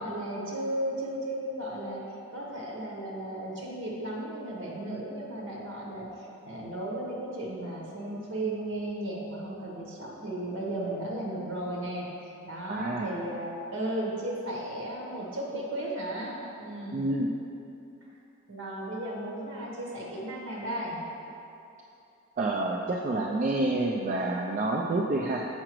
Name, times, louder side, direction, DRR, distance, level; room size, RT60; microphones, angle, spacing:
voice 1, 0.0-2.0 2.3-17.1 18.5-21.0, right 1 dB, 60° right, -4 dB, 1.2 m, -35 dB
voice 2, 12.7-13.2 16.9-17.3 22.4-25.5, right 2 dB, 35° right, -2 dB, 0.3 m, -28 dB
7.6 x 4.9 x 3.0 m, 2.8 s
head